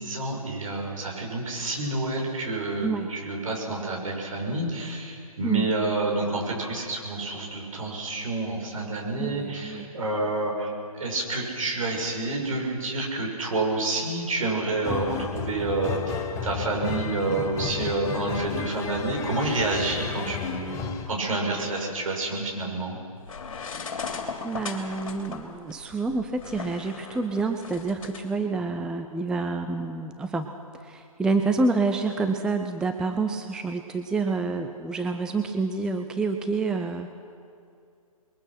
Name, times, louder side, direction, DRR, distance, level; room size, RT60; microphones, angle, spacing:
voice 1, 0.0-23.0, right 2 dB, 60° right, -1 dB, 6.7 m, -29 dB
voice 2, 2.8-3.1 5.4-5.7 9.2-9.9 24.4-30.5 30.8-37.1, right 3 dB, 5° right, 6 dB, 0.5 m, -28 dB
sound 1, 14.8-21.1, left 8 dB, 15° left, 0.9 m, -33 dB
sound 2, 23.3-28.2, left 5 dB, 60° left, 3.0 m, -37 dB
28.0 x 22.0 x 6.0 m, 2.4 s
figure-of-eight pair, 130°, 19 cm